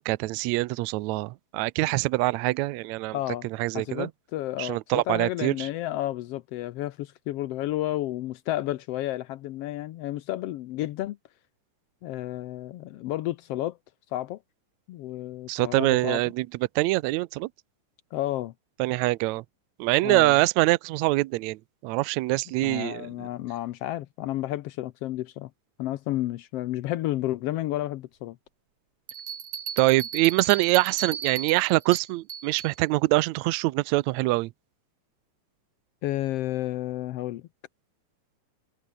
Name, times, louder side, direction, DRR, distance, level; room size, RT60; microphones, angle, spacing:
voice 1, 0.0-3.2 3.6-4.1 4.6-5.7 15.5-16.5 16.8-17.5 18.8-19.4 19.8-23.1 29.8-34.5, right 20 dB, 80° right, 1.7 m, -24 dB
voice 2, 3.1-3.5 3.7-11.2 12.0-13.8 14.1-14.4 14.9-16.2 18.1-18.5 20.0-20.4 22.6-25.5 25.8-28.4 36.0-37.4, left 14 dB, 85° left, 1.3 m, -31 dB
Bell, 29.1-32.8, right 8 dB, 55° right, 2.7 m, -36 dB
omnidirectional pair, 3.7 m